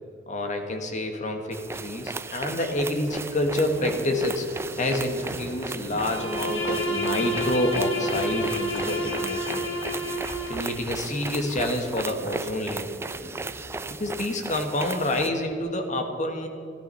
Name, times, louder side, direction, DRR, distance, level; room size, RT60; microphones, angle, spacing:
voice 1, 0.3-4.5 4.8-9.7 10.4-12.9 13.9-16.5, left 1 dB, 40° left, 5 dB, 1.5 m, -28 dB
sound 1, 1.5-15.3, right 3 dB, 15° right, 0.4 m, -36 dB
Train, 3.1-15.6, right 1 dB, 35° right, 2.5 m, -43 dB
Bowed string instrument, 5.9-10.8, equal, 65° left, 2.2 m, -30 dB
13.5 x 12.5 x 5.6 m, 2.8 s
head